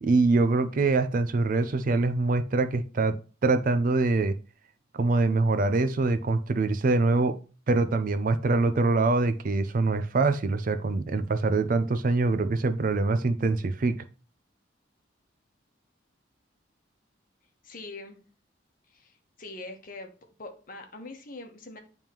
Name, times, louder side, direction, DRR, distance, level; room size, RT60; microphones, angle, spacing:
voice 1, 0.0-4.4 4.9-7.4 7.7-14.0, right 3 dB, 45° right, 0.4 m, -24 dB
voice 2, 17.6-18.2 18.9-20.1 20.4-21.8, left 2 dB, 45° left, 1.0 m, -43 dB
9.0 x 3.5 x 2.9 m
head